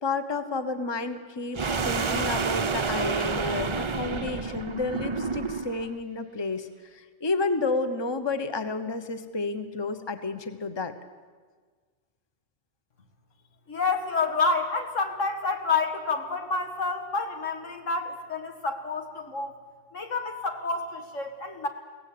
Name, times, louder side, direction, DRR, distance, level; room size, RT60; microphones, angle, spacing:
voice 1, 0.0-10.9, left 3 dB, 20° left, 9 dB, 1.1 m, -31 dB
sound 1, 1.5-5.9, right 4 dB, 30° right, 0.6 m, -29 dB
voice 2, 13.7-19.6 19.9-21.7, left 4 dB, 85° left, 5 dB, 2.2 m, -29 dB
23.0 x 17.0 x 8.6 m, 1.5 s
omnidirectional pair, 1.3 m